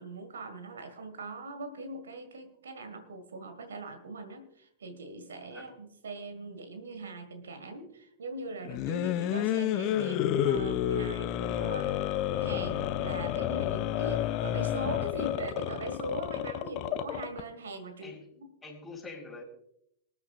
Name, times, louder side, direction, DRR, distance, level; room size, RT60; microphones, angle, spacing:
voice 1, 0.0-12.0 12.4-18.5, right 2 dB, 70° right, 9 dB, 1.8 m, -40 dB
sound 1, 8.6-17.4, left 11 dB, 40° left, 0.7 m, -30 dB
voice 2, 18.6-19.4, left 3 dB, 10° left, -2 dB, 4.4 m, -45 dB
25.0 x 9.5 x 2.5 m, 0.74 s
figure-of-eight pair, 90°, 0 cm